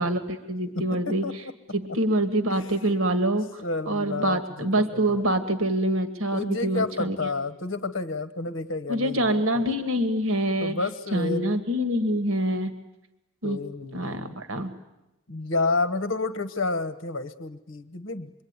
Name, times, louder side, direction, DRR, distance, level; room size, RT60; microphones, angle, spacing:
voice 1, 0.0-1.4 1.7-7.3 8.9-10.8 11.1-12.8 13.4-13.6 13.9-14.8, right 1 dB, 75° right, 9 dB, 1.8 m, -26 dB
voice 2, 0.7-1.5 3.6-5.2 6.3-9.7 10.6-11.5 13.4-14.3 15.3-18.3, left 3 dB, 65° left, 12 dB, 1.2 m, -30 dB
27.5 x 22.5 x 9.7 m, 0.97 s
head